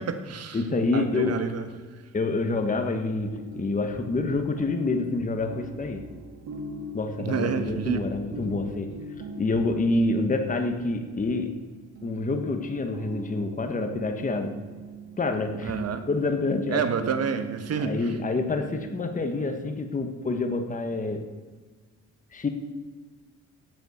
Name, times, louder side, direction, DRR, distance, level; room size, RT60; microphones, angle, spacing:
voice 1, 0.0-0.6 0.9-1.7 7.2-8.0 15.6-16.0 16.7-18.1, right 6 dB, 55° right, 9 dB, 1.4 m, -29 dB
voice 2, 0.5-1.5 2.1-6.0 6.9-9.0 9.4-11.6 12.0-14.6 15.2-15.7 16.1-16.9 17.8-21.2 22.3-22.5, left 3 dB, 25° left, 6 dB, 1.3 m, -27 dB
sound 1, 2.2-20.2, right 3 dB, 70° right, 1.6 m, -42 dB
9.3 x 8.3 x 8.1 m, 1.4 s
cardioid pair, 90°, 30 cm